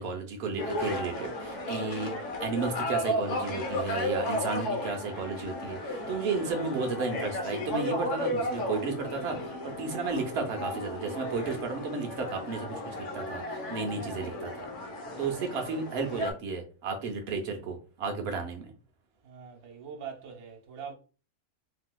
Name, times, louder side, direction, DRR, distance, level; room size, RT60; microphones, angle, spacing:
voice 1, 0.0-2.1 2.4-14.7 15.2-18.7, right 4 dB, 55° right, 0.8 m, -33 dB
sound 1, 0.6-16.3, left 1 dB, 60° left, 0.9 m, -34 dB
voice 2, 7.8-8.3 13.8-14.2 15.0-15.6 19.2-20.9, right 6 dB, 80° right, 1.2 m, -45 dB
3.3 x 2.7 x 2.2 m
omnidirectional pair, 1.6 m